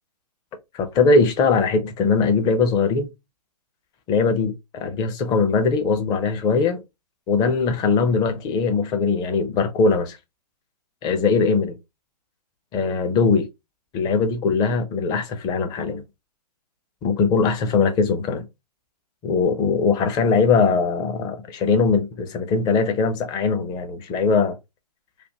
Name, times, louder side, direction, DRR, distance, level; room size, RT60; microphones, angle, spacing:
voice 1, 0.7-3.1 4.1-6.8 7.3-10.2 11.0-11.8 12.7-13.5 13.9-16.0 17.0-18.4 19.2-24.6, left 4 dB, 20° left, 0.5 m, -21 dB
3.3 x 2.2 x 2.7 m
figure-of-eight pair, 120°, 21 cm